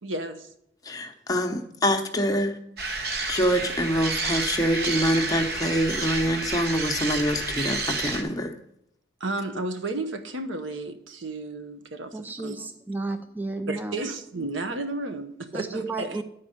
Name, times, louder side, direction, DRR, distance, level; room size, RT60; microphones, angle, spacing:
voice 1, 0.0-0.5 9.2-12.7 13.7-16.2, right 2 dB, 90° right, 0.9 m, -33 dB
voice 2, 0.8-2.6 3.3-8.5, equal, 20° left, 0.8 m, -25 dB
sound 1, 2.8-8.2, right 3 dB, 55° right, 1.1 m, -30 dB
voice 3, 12.1-14.0 15.5-16.2, right 2 dB, 10° right, 0.4 m, -32 dB
9.9 x 4.4 x 6.5 m
head